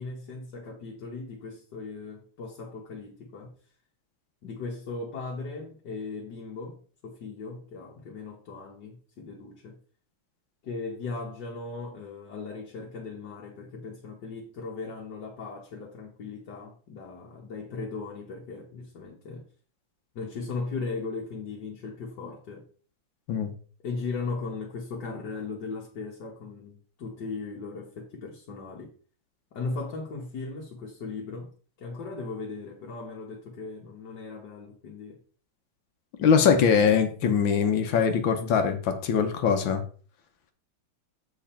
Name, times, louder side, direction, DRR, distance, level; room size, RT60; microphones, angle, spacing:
voice 1, 0.0-3.5 4.4-9.8 10.6-19.4 20.2-22.7 23.8-28.9 29.5-31.5 31.8-35.2, left 4 dB, 60° left, 1.9 m, -37 dB
voice 2, 36.2-39.8, left 6 dB, 80° left, 1.8 m, -22 dB
7.3 x 6.1 x 4.3 m
omnidirectional pair, 2.1 m